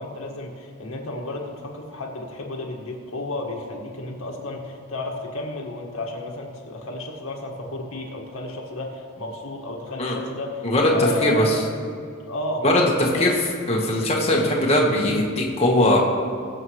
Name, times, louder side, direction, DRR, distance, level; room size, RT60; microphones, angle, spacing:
voice 1, 0.0-11.6 12.3-13.3 13.7-13.9, left 2 dB, 70° left, 0 dB, 1.8 m, -32 dB
voice 2, 10.6-11.6 12.6-12.8 13.1-13.3 13.7-16.0, left 1 dB, 30° left, -3 dB, 1.4 m, -20 dB
22.0 x 7.7 x 3.2 m, 2.2 s
head